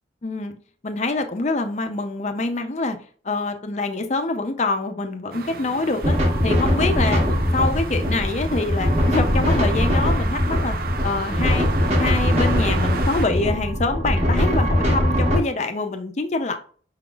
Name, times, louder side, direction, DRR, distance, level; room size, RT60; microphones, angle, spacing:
voice 1, 0.2-0.5 0.8-3.0 3.2-6.2 6.4-7.2 7.5-10.8 11.0-11.7 12.0-16.6, left 3 dB, 35° left, 0.5 m, -25 dB
sound 1, 5.3-13.3, right 4 dB, 50° right, 0.5 m, -34 dB
sound 2, 6.0-15.4, equal, 35° right, 1.2 m, -21 dB
5.8 x 3.8 x 2.3 m
head